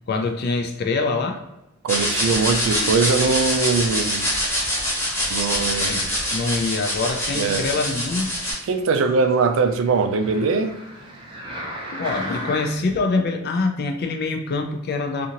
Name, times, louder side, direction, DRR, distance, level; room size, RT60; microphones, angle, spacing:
voice 1, 0.1-1.4 5.8-6.0 6.3-8.3 11.9-15.3, left 3 dB, 50° left, 5 dB, 0.4 m, -24 dB
voice 2, 1.8-4.3 5.3-6.1 7.3-7.6 8.7-10.7, right 4 dB, 65° right, 8 dB, 0.3 m, -21 dB
sound 1, 1.9-8.5, equal, 10° left, 0.9 m, -24 dB
sound 2, 8.5-13.0 13.6-13.7, equal, 25° right, 0.6 m, -36 dB
2.7 x 2.5 x 2.8 m, 0.92 s
head